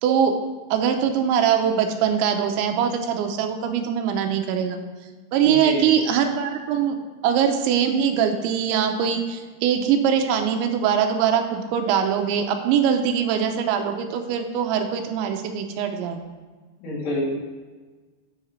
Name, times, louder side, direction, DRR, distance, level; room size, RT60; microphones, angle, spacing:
voice 1, 0.0-0.4 0.7-4.8 5.3-7.0 7.2-16.3, right 8 dB, 85° right, 5 dB, 3.0 m, -22 dB
voice 2, 5.4-5.8 16.8-17.3, equal, 65° left, -7 dB, 5.1 m, -27 dB
11.5 x 5.8 x 5.4 m, 1.4 s
omnidirectional pair, 5.4 m